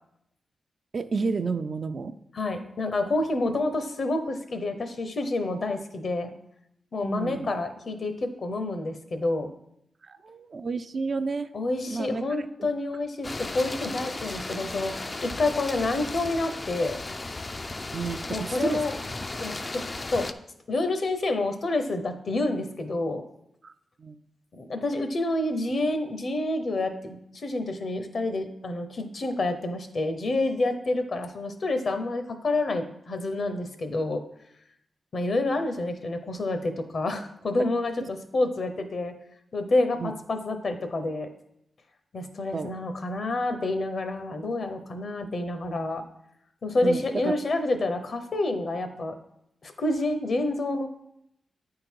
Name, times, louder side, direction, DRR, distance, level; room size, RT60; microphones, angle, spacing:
voice 1, 0.9-2.1 7.0-7.5 10.0-11.5 11.9-12.2 12.6-12.7 17.9-18.8 23.6-23.7 24.0-24.2 38.0-38.1 40.0-40.1 42.5-42.7 46.8-47.3, right 4 dB, 50° right, 10 dB, 0.4 m, -31 dB
voice 2, 2.3-6.3 6.9-9.5 11.5-14.9 15.2-17.0 18.3-19.0 19.4-20.3 20.7-23.2 24.5-34.2 35.1-39.1 39.5-41.3 42.1-46.0 46.6-49.1 49.6-50.9, left 2 dB, 55° left, 8 dB, 0.8 m, -28 dB
sound 1, 13.2-20.3, left 2 dB, 30° left, 0.4 m, -35 dB
9.0 x 3.8 x 4.5 m, 0.76 s
wide cardioid pair, 90°, 0 cm